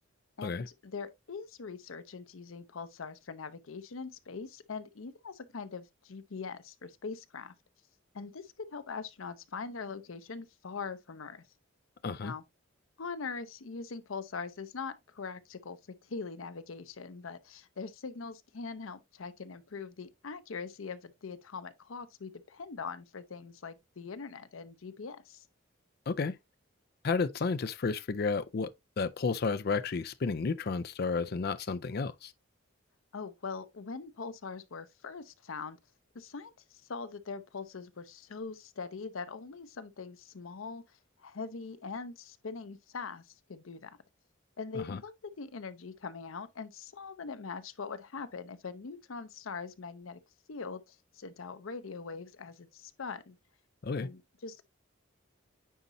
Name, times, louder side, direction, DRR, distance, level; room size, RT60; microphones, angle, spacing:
voice 1, 0.4-7.5 8.1-11.5 12.2-12.4 13.0-25.5 33.1-35.8 36.1-44.0 44.6-50.2 50.5-53.4 54.0-54.6, left 4 dB, 85° left, 0.7 m, -42 dB
voice 2, 27.0-28.7 29.0-32.3 44.7-45.0 53.8-54.1, left 4 dB, 50° left, 0.4 m, -32 dB
9.3 x 4.1 x 2.6 m
head